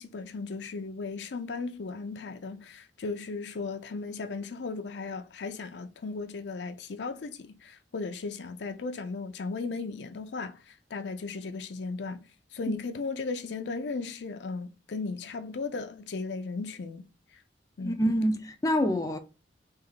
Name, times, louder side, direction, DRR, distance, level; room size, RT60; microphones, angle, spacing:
voice 1, 0.0-12.2 12.5-17.1 17.8-18.0, left 4 dB, 70° left, 0.5 m, -36 dB
voice 2, 17.8-19.2, equal, 20° left, 0.4 m, -26 dB
3.3 x 2.7 x 3.8 m
head